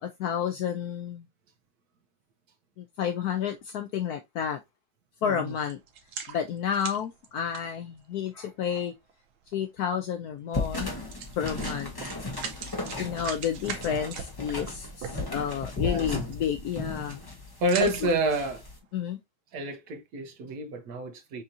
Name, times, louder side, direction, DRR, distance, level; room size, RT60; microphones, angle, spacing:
voice 1, 0.0-1.3 2.8-4.6 5.2-5.8 6.3-9.0 9.5-11.0 11.4-11.9 12.6-17.2 17.8-18.1 18.9-19.2, left 8 dB, 70° left, 0.9 m, -31 dB
voice 2, 5.2-5.5 15.8-16.2 17.6-18.6 19.5-21.4, right 2 dB, 60° right, 1.2 m, -29 dB
sound 1, 5.6-8.3 9.1-9.2 9.5-9.6 10.6-10.8 11.1-15.6 16.1-16.3 16.6-17.0 17.5-18.5 18.9-19.0, right 7 dB, 80° right, 1.7 m, -40 dB
sound 2, 10.5-18.8, left 2 dB, 20° left, 0.7 m, -35 dB
6.2 x 2.9 x 2.6 m
omnidirectional pair, 2.2 m